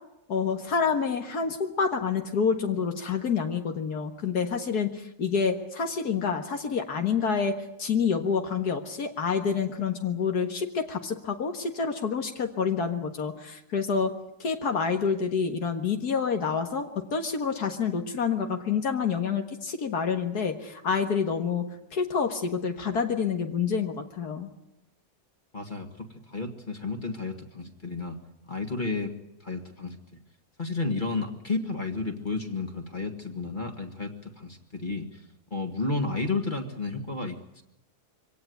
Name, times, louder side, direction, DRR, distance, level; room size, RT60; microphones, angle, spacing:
voice 1, 0.3-7.5 7.8-14.1 14.4-21.6 21.9-24.5, left 6 dB, 75° left, 5 dB, 2.1 m, -28 dB
voice 2, 25.5-28.2 28.5-29.1 29.4-30.0 30.6-35.2 35.5-37.6, left 3 dB, 30° left, 4 dB, 2.0 m, -32 dB
24.0 x 17.5 x 9.4 m, 0.83 s
omnidirectional pair, 1.7 m